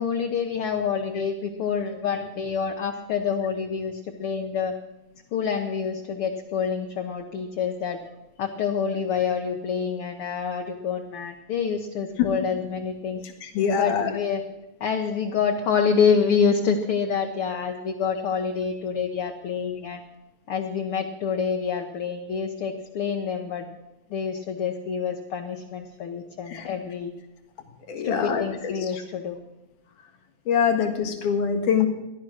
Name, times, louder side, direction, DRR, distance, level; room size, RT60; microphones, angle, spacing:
voice 1, 0.0-4.7 5.3-8.0 8.4-13.2 13.7-14.4 14.8-20.0 20.5-23.7 24.1-27.1 28.0-29.4, left 6 dB, 65° left, 3 dB, 1.5 m, -27 dB
voice 2, 13.2-14.1 26.5-26.7 27.9-29.0 30.5-31.9, left 7 dB, 80° left, 5 dB, 3.1 m, -24 dB
15.5 x 11.0 x 6.4 m, 0.98 s
omnidirectional pair, 3.6 m